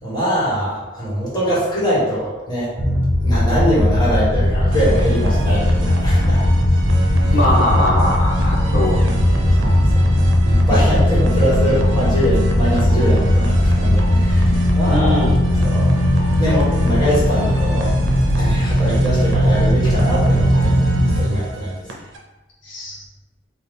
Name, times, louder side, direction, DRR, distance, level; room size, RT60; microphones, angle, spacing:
voice 1, 0.0-2.7 3.2-6.4 7.2-7.4 9.5-10.1 10.7-15.3 15.5-15.9 16.4-17.9 18.4-20.8 21.2-21.8, equal, 20° left, -8 dB, 1.3 m, -22 dB
sound 1, 2.8-21.2, left 1 dB, 10° right, 0.7 m, -17 dB
sound 2, 4.7-22.2, right 1 dB, 80° right, 0.6 m, -27 dB
voice 2, 7.3-9.4 11.7-11.8 14.9-15.4 22.6-23.0, left 1 dB, 65° left, -5 dB, 0.7 m, -22 dB
3.9 x 2.3 x 3.5 m, 1.1 s
head